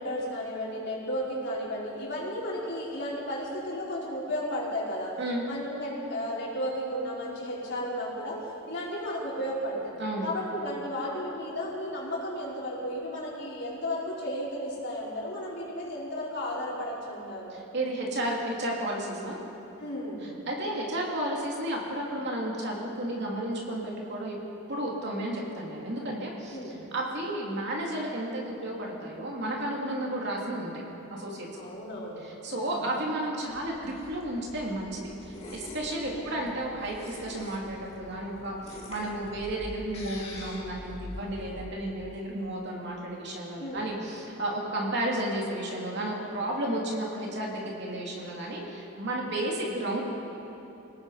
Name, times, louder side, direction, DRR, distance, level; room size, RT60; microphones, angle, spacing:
voice 1, 0.0-5.1 5.5-8.4 8.7-9.9 10.2-17.6 19.8-20.3 26.5-26.8 31.6-32.8 36.1-36.3 43.6-43.9, equal, 50° left, -6 dB, 5.1 m, -34 dB
voice 2, 17.5-19.4 20.2-24.4 24.7-30.8 31.1-31.5 32.2-50.0, right 1 dB, 50° right, -2 dB, 3.2 m, -32 dB
sound 1, 33.5-41.6, left 1 dB, 25° left, 2.6 m, -45 dB
28.0 x 18.0 x 5.1 m, 3.0 s
head